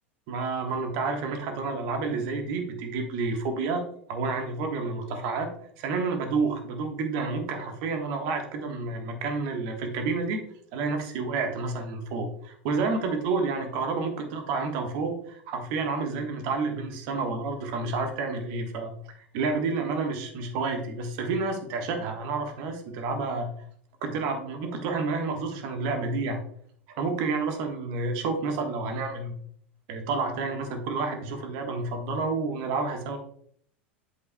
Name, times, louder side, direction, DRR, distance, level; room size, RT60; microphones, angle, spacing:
voice 1, 0.3-3.8 4.1-5.5 5.8-10.4 10.7-18.9 19.3-23.5 24.0-26.4 27.0-29.3 29.9-33.2, right 4 dB, 55° right, 4 dB, 1.4 m, -29 dB
8.2 x 8.2 x 2.3 m, 0.64 s
figure-of-eight pair, 80°, 6 cm